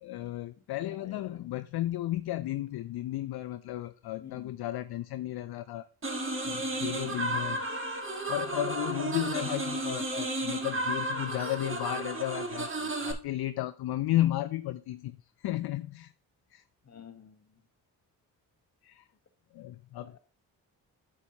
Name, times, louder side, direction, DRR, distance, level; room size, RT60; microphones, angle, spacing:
voice 1, 0.0-5.9 6.4-7.6 8.3-16.1 16.5-16.6 18.8-19.1 19.5-20.2, left 14 dB, 60° left, 12 dB, 0.5 m, -34 dB
voice 2, 0.8-1.4 4.2-4.5 16.8-17.6 20.0-20.2, left 7 dB, 35° left, 8 dB, 1.1 m, -50 dB
sound 1, 6.0-13.1, right 2 dB, 30° right, 1.5 m, -33 dB
8.2 x 6.2 x 2.8 m, 0.40 s
supercardioid pair, 40°, 43 cm